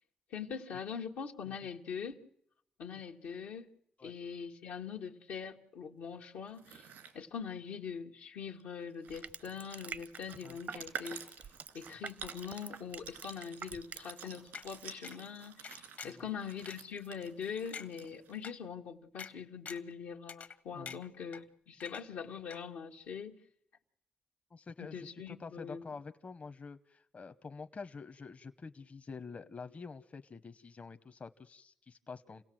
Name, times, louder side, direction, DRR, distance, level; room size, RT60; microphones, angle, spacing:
voice 1, 0.3-2.2 2.8-3.7 4.0-6.9 7.1-11.2 11.7-23.4 24.8-25.8, left 7 dB, 85° left, 1 dB, 1.5 m, -43 dB
sound 1, 6.5-7.2 8.6-8.7 8.9-18.5, right 7 dB, 90° right, 2.5 m, -50 dB
Crushing, 9.1-14.4 14.6-14.8, right 5 dB, 60° right, 0.8 m, -46 dB
sound 2, 14.5-14.7 15.0-15.2 15.6-16.2 16.6-16.8 17.3-17.4 17.7-17.9 18.4-18.5 19.2-19.3 19.6-19.9 20.3-20.6 20.8-21.4 21.8-22.2 22.5-22.6, left 6 dB, 65° left, 1.5 m, -46 dB
voice 2, 24.5-32.4, left 4 dB, 45° left, 10 dB, 1.0 m, -47 dB
28.5 x 17.0 x 7.8 m, 0.74 s
supercardioid pair, 50°, 3 cm